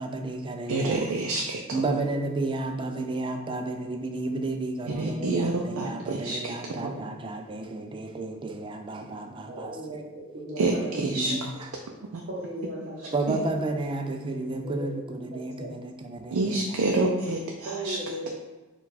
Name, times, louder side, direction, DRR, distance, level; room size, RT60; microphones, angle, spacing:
voice 1, 0.0-1.1 1.7-9.7 11.0-11.7 13.1-16.8, right 2 dB, 25° right, 5 dB, 0.3 m, -32 dB
voice 2, 0.7-1.8 4.9-6.5 6.8-7.0 10.6-11.5 12.1-12.2 13.3-13.4 16.3-18.0, right 2 dB, 85° right, 0 dB, 0.4 m, -28 dB
voice 3, 1.9-2.3 5.2-5.3 9.5-11.4 12.3-13.5 14.3-14.4 14.6-15.7 17.7-18.3, right 1 dB, 45° right, -6 dB, 0.7 m, -37 dB
4.3 x 2.3 x 4.1 m, 1.2 s
head